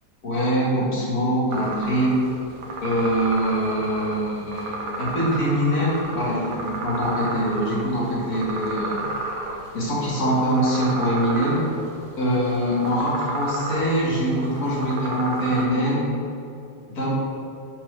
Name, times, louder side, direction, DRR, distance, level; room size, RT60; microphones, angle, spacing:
voice 1, 0.2-2.3 2.8-9.0 9.7-11.6 12.2-16.1 16.9-17.1, equal, 55° left, -6 dB, 2.2 m, -23 dB
sound 1, 1.5-15.7, right 2 dB, 90° right, 1.7 m, -33 dB
7.1 x 4.3 x 5.8 m, 2.6 s
omnidirectional pair, 2.0 m